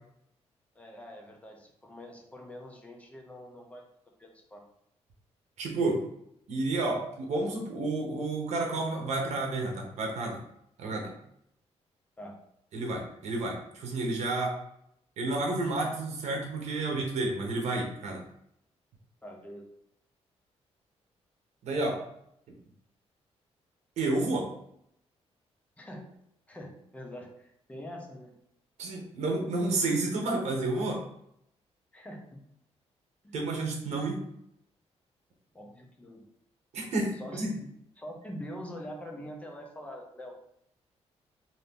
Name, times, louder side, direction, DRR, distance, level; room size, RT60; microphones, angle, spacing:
voice 1, 0.7-3.9 4.2-4.6 12.2-12.4 19.2-19.7 25.8-26.1 26.5-28.4 31.9-32.4 33.2-33.3 35.5-36.2 37.2-37.7 38.0-40.4, equal, 10° left, 1 dB, 0.6 m, -44 dB
voice 2, 5.6-6.0 6.5-10.4 10.8-11.1 12.7-14.5 15.2-18.2 21.6-22.0 24.0-24.5 28.8-31.0 33.3-34.2 36.7-37.5, right 2 dB, 80° right, 1 dB, 0.8 m, -30 dB
2.6 x 2.6 x 3.5 m, 0.74 s
cardioid pair, 130°, 11 cm